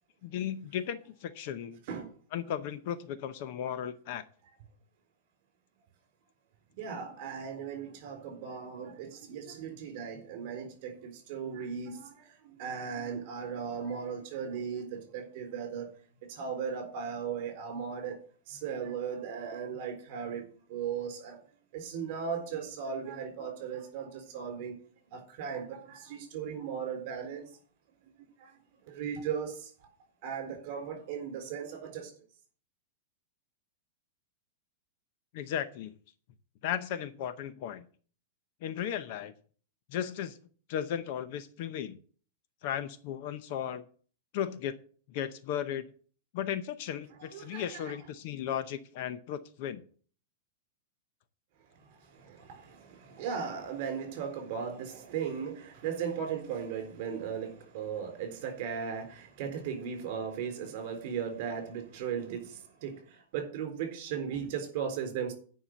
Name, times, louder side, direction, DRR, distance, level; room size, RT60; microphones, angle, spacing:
voice 1, 0.2-1.8 2.3-4.2 35.3-35.9 36.6-37.9 38.6-39.3 39.9-40.4 40.7-42.0 42.6-43.8 44.3-44.7 45.1-45.8 46.3-49.8, left 9 dB, 40° left, 0.7 m, -35 dB
voice 2, 6.8-15.9 16.3-18.2 18.5-20.4 20.7-21.4 21.7-24.8 25.1-27.6 28.4-28.5 28.9-29.7 30.2-32.1 47.3-47.9 52.1-65.3, right 7 dB, 40° right, 4.0 m, -37 dB
10.0 x 5.6 x 7.8 m
supercardioid pair, 175°, 0 cm